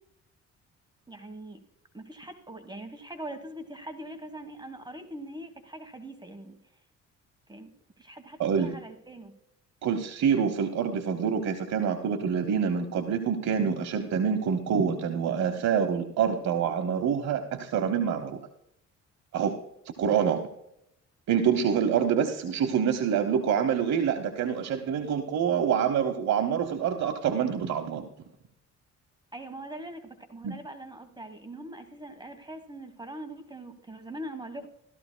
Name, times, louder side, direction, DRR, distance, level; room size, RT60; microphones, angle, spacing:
voice 1, 1.1-1.6 1.9-6.6 7.5-7.7 8.0-9.3 29.3-34.7, right 1 dB, 15° right, 8 dB, 1.3 m, -42 dB
voice 2, 8.4-8.8 9.8-18.4 19.3-19.5 19.8-20.4 21.3-28.1 30.4-30.5, right 7 dB, 65° right, 4 dB, 1.0 m, -26 dB
15.0 x 13.0 x 2.2 m, 0.78 s
cardioid pair, 90°, 30 cm